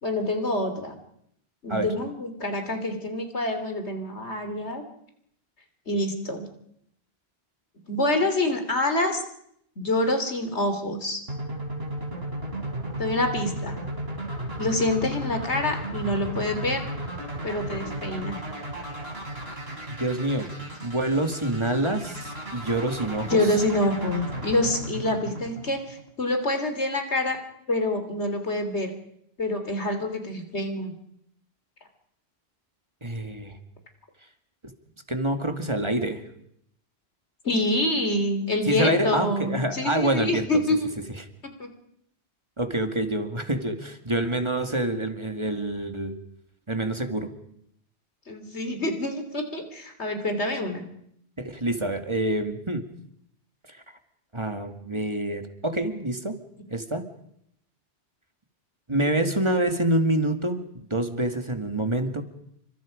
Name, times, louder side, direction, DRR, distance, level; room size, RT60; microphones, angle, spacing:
voice 1, 0.0-0.9 1.6-4.8 5.9-6.4 7.9-9.2 9.8-11.2 13.0-13.8 14.6-16.9 17.4-18.4 23.3-27.4 27.7-28.9 29.4-30.9 37.4-40.9 41.6-41.7 48.3-50.8, left 1 dB, 90° left, 6 dB, 3.4 m, -26 dB
sound 1, 11.3-26.2, right 1 dB, 65° right, 4.5 m, -34 dB
voice 2, 20.0-20.5 20.8-23.4 33.0-33.6 35.1-36.2 38.7-40.6 42.6-46.2 46.7-47.3 51.4-52.8 54.3-56.4 56.7-57.0 58.9-60.6 60.9-62.2, right 1 dB, 25° right, 6 dB, 2.2 m, -26 dB
29.0 x 25.5 x 5.2 m, 0.74 s
omnidirectional pair, 1.1 m